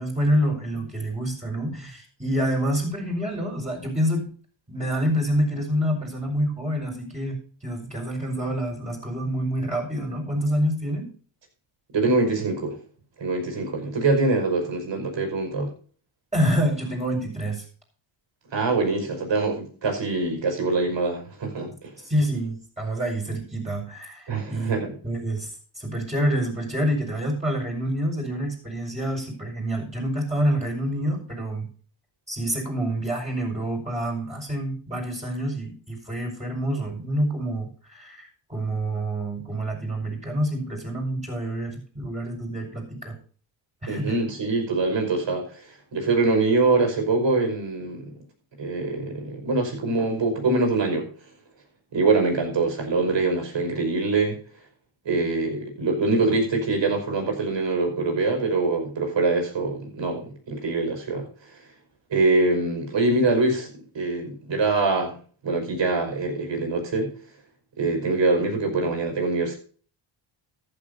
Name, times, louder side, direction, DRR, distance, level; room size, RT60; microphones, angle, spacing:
voice 1, 0.0-4.3 4.7-11.1 16.3-17.6 22.0-24.8 25.0-31.7 32.3-43.2 43.8-44.2, equal, 15° right, -3 dB, 5.7 m, -27 dB
voice 2, 11.9-12.8 13.2-15.7 18.5-21.9 24.3-25.0 43.9-48.2 48.6-51.1 51.9-54.4 55.0-61.6 62.1-65.2 65.4-67.1 67.8-69.5, right 3 dB, 60° right, 3 dB, 5.6 m, -24 dB
14.5 x 11.5 x 2.8 m, 0.43 s
cardioid pair, 90°, 49 cm